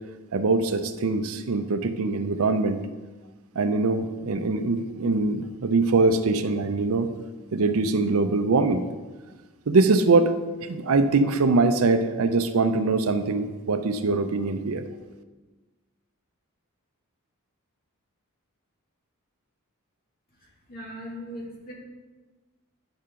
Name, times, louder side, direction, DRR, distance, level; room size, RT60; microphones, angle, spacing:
voice 1, 0.3-2.8 3.6-7.1 7.5-8.8 9.7-14.8, right 3 dB, 65° right, 9 dB, 0.6 m, -23 dB
voice 2, 20.3-21.7, equal, 45° left, -3 dB, 2.2 m, -39 dB
10.5 x 5.6 x 3.8 m, 1.3 s
head